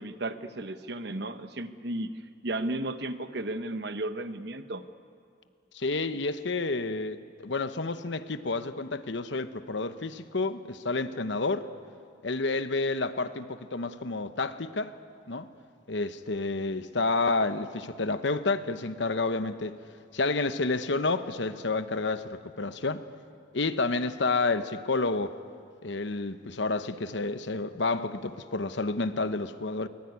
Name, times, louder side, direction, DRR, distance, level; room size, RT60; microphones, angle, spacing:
voice 1, 0.0-2.1 2.4-4.8, right 2 dB, 55° right, 10 dB, 1.0 m, -34 dB
voice 2, 5.7-11.7 12.2-14.9 15.3-15.5 15.9-19.8 20.1-23.0 23.5-25.3 25.8-29.9, left 3 dB, 70° left, 11 dB, 1.0 m, -30 dB
23.0 x 20.5 x 9.7 m, 2.3 s
head